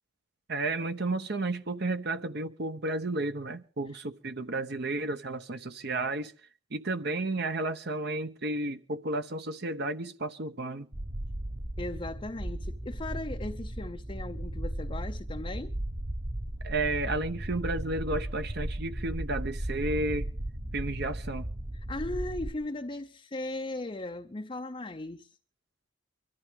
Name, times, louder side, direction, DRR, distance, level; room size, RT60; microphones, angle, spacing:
voice 1, 0.5-6.3 6.7-10.9 16.6-20.3 20.7-21.5, right 2 dB, 55° right, 0.9 m, -32 dB
sound 1, 10.9-22.5, right 1 dB, 25° right, 1.0 m, -36 dB
voice 2, 11.8-15.8 21.7-25.4, left 2 dB, 25° left, 0.6 m, -37 dB
24.0 x 14.0 x 3.6 m
head